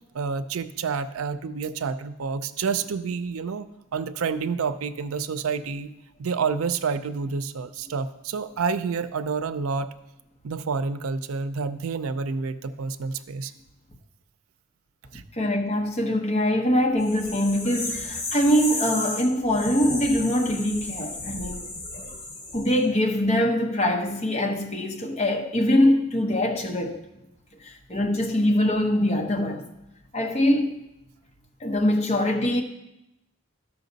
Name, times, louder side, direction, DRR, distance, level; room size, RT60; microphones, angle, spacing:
voice 1, 0.1-3.7 3.9-5.9 6.2-9.9 10.4-13.5 15.1-15.2, right 5 dB, 85° right, 0.5 m, -29 dB
voice 2, 15.4-21.7 22.5-27.0 27.6-29.7 30.1-30.7 31.6-32.6, left 1 dB, 30° left, 1.0 m, -23 dB
sound 1, 17.0-22.8, left 2 dB, 65° left, 2.9 m, -33 dB
13.0 x 5.7 x 4.0 m
head